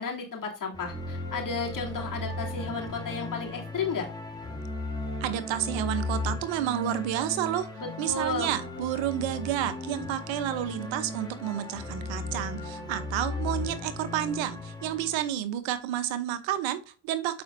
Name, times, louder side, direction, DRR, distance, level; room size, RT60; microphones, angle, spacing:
voice 1, 0.0-4.1 7.8-8.5, left 4 dB, 45° left, -1 dB, 2.9 m, -33 dB
sound 1, 0.7-15.2, left 2 dB, 10° left, 2.4 m, -36 dB
voice 2, 5.2-7.7 8.0-17.4, right 11 dB, 75° right, 11 dB, 0.9 m, -30 dB
6.9 x 5.2 x 2.6 m, 0.34 s
supercardioid pair, 60°, 46 cm